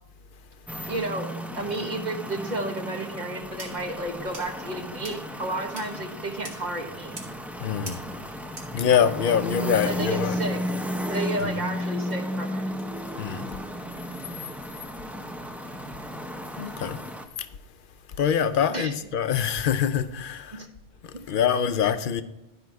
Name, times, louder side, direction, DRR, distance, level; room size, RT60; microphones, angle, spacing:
sound 1, 0.7-17.3, equal, ahead, 0.4 m, -34 dB
voice 1, 0.9-7.2 9.8-10.6 11.1-12.7 18.7-19.0 20.5-20.7 21.1-21.4, right 2 dB, 45° right, 1.1 m, -32 dB
sound 2, 3.4-9.3 10.0-10.1 10.7-10.8 11.4-11.5 12.1-12.2 12.8-12.9 13.5-13.6 14.2-14.3, right 2 dB, 75° right, 2.2 m, -46 dB
voice 2, 7.6-8.0 8.7-10.4 11.4-11.5 13.2-13.5 16.6-17.0 17.4-17.5 18.2-20.6 21.0-22.2, left 8 dB, 60° left, 0.7 m, -24 dB
12.0 x 5.5 x 4.6 m
omnidirectional pair, 1.1 m